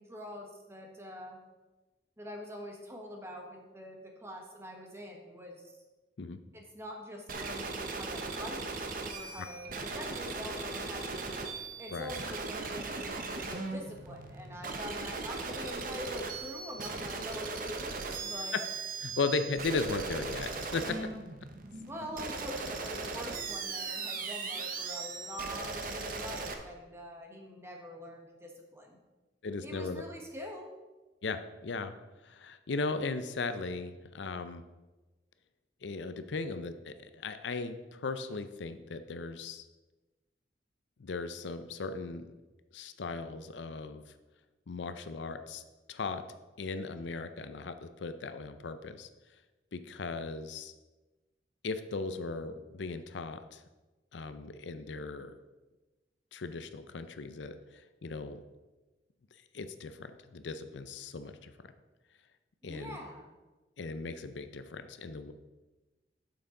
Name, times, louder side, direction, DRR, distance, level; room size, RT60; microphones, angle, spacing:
voice 1, 0.0-1.4 2.2-5.6 6.5-11.2 11.8-18.5 21.9-29.0 29.6-30.7 62.6-63.3, equal, 15° right, 1 dB, 1.3 m, -44 dB
sound 1, 7.3-26.5, right 4 dB, 50° right, 0.9 m, -38 dB
voice 2, 19.0-21.0 29.4-30.0 31.2-31.9 32.2-34.6 35.8-39.6 41.0-42.3 42.7-44.0 44.7-45.6 45.9-46.2 46.6-49.1 49.7-50.7 51.6-53.6 54.1-55.4 56.3-58.4 59.5-61.5 62.6-63.0 63.8-65.3, left 3 dB, 90° left, 10 dB, 0.6 m, -37 dB
8.8 x 6.9 x 3.8 m, 1.1 s
head